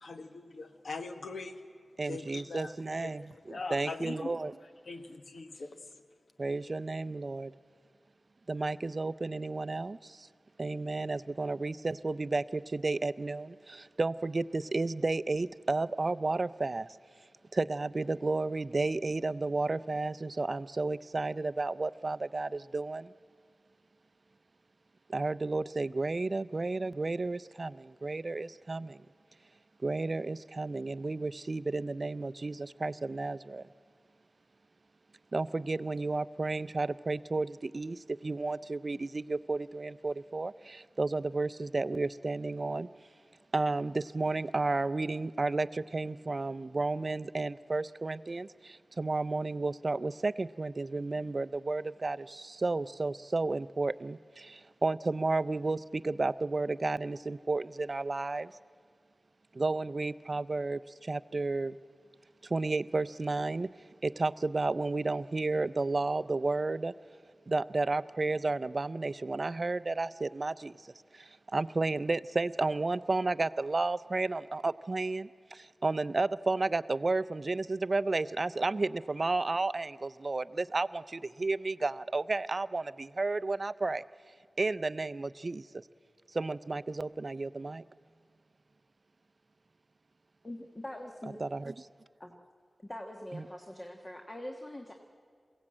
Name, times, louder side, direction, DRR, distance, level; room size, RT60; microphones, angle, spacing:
voice 1, 0.0-1.6 2.0-2.7 3.0-4.3 4.9-5.8, left 3 dB, 75° left, 8 dB, 1.2 m, -41 dB
voice 2, 2.0-3.3 3.7-4.5 6.4-7.5 8.5-10.3 10.6-17.0 17.5-23.1 25.1-29.0 29.8-33.6 35.3-42.9 43.5-58.6 59.5-61.8 62.4-63.7 64.0-66.9 67.5-70.8 71.1-84.0 84.6-85.7 86.3-87.8 91.4-91.7 93.3-93.5, right 3 dB, 45° right, 16 dB, 0.4 m, -32 dB
voice 3, 90.4-91.4 92.2-92.3 92.8-94.9, left 1 dB, 25° left, 3 dB, 1.4 m, -43 dB
22.5 x 16.0 x 8.8 m, 2.1 s
wide cardioid pair, 95°, 0 cm